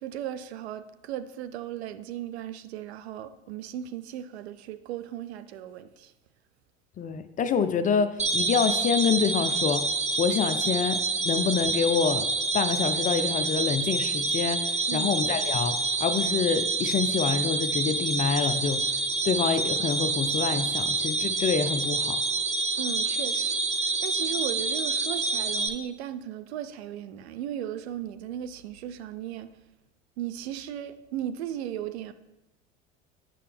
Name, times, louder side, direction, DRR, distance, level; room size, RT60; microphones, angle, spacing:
voice 1, 0.0-6.1 10.7-10.8 14.9-15.2 22.8-29.5 30.2-32.1, right 11 dB, 70° right, 0.5 m, -36 dB
voice 2, 7.0-9.9 10.2-12.2 12.5-18.9 19.2-22.2, left 6 dB, 25° left, 0.4 m, -27 dB
sound 1, 8.2-25.7, right 3 dB, 20° right, 0.8 m, -27 dB
8.4 x 5.6 x 3.4 m
figure-of-eight pair, 75°, 34 cm